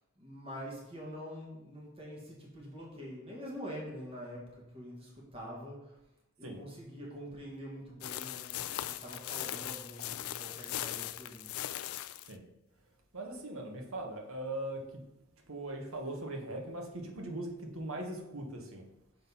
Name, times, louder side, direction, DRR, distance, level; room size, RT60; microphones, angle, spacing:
voice 1, 0.2-6.0 6.4-11.5, equal, 25° right, -3 dB, 1.8 m, -45 dB
sound 1, 8.0-12.3, left 13 dB, 90° left, 0.4 m, -39 dB
voice 2, 13.1-14.8 15.5-18.8, right 1 dB, 80° right, 2 dB, 1.3 m, -40 dB
6.5 x 4.0 x 5.5 m, 0.90 s
head